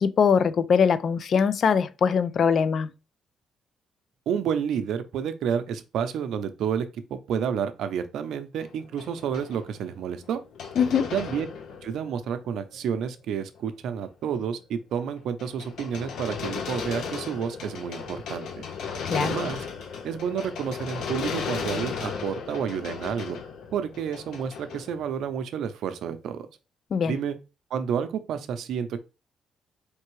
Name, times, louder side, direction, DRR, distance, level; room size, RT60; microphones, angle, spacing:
voice 1, 0.0-2.9 10.8-11.1 19.0-19.4 26.9-27.2, left 6 dB, 55° left, 0.4 m, -22 dB
voice 2, 4.3-10.4 11.1-11.5 11.8-18.6 19.1-19.6 20.0-23.4 23.7-26.5 27.1-27.4 27.7-29.0, right 7 dB, 75° right, 0.6 m, -30 dB
sound 1, 8.6-12.4 12.7-12.8 13.6-13.7 14.0-14.4 15.0-25.4, left 6 dB, 75° left, 0.8 m, -35 dB
4.4 x 3.3 x 3.1 m
cardioid pair, 90°, 0 cm